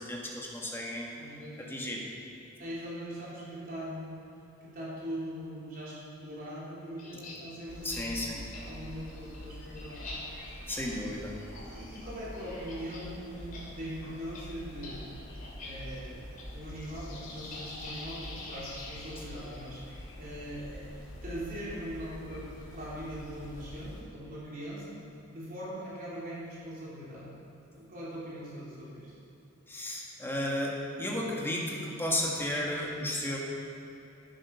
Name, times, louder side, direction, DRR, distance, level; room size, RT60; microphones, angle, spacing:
voice 1, 0.0-1.2 1.6-2.0 7.8-8.5 10.7-11.3 29.7-33.4, left 1 dB, 10° left, -3 dB, 1.7 m, -33 dB
voice 2, 1.1-1.7 2.6-4.2 4.6-8.1 8.6-10.0 10.3-10.4 10.9-11.1 11.7-15.1 15.6-16.2 16.5-19.8 20.2-20.9 21.2-25.0 25.3-29.1, equal, 45° right, -8 dB, 3.5 m, -41 dB
sound 1, 7.0-7.4 7.9-8.1 8.5-8.6 9.0-13.1 13.4-13.6 13.9-14.0 14.3-14.4 14.8-15.0 15.4-15.7 16.4-16.5 17.5-19.9, left 3 dB, 40° left, 2.8 m, -47 dB
sound 2, 7.7-24.0, left 1 dB, 85° left, 3.2 m, -45 dB
12.0 x 9.6 x 5.9 m, 2.8 s
head